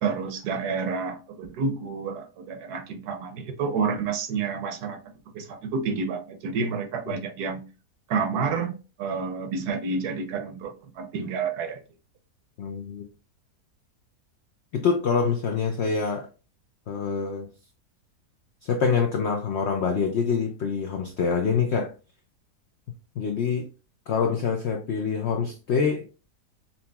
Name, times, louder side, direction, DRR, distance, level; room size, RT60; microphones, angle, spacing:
voice 1, 0.0-5.0 5.3-7.6 8.1-8.7 9.0-11.8, right 5 dB, 75° right, 1.2 m, -29 dB
voice 2, 12.6-13.1 14.7-16.3 16.9-17.5 18.6-21.9 23.2-23.7 24.1-26.1, left 5 dB, 75° left, 0.6 m, -25 dB
5.2 x 2.9 x 2.2 m
omnidirectional pair, 1.7 m